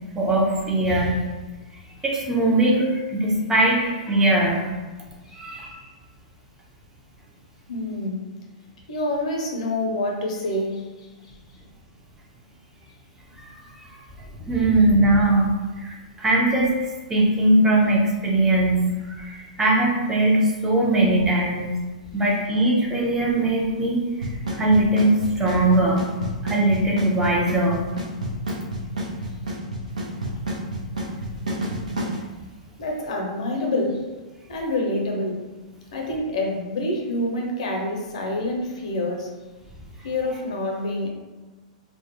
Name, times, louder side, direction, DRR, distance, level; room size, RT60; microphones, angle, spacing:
voice 1, 0.2-1.2 2.0-4.7 5.3-5.8 13.5-13.6 14.4-15.5 15.8-16.7 17.1-21.8 22.1-24.0 24.6-26.1 26.4-27.8, right 1 dB, 15° right, -3 dB, 0.5 m, -20 dB
voice 2, 7.7-8.2 8.9-11.3 32.8-34.0 34.5-35.4 35.9-39.3 40.0-41.1, left 1 dB, 65° left, 0 dB, 0.6 m, -27 dB
Drum kit / Snare drum / Bass drum, 24.2-32.2, right 1 dB, 80° right, 0.6 m, -28 dB
2.1 x 2.0 x 2.8 m, 1.2 s
hypercardioid pair, 110°, 4 cm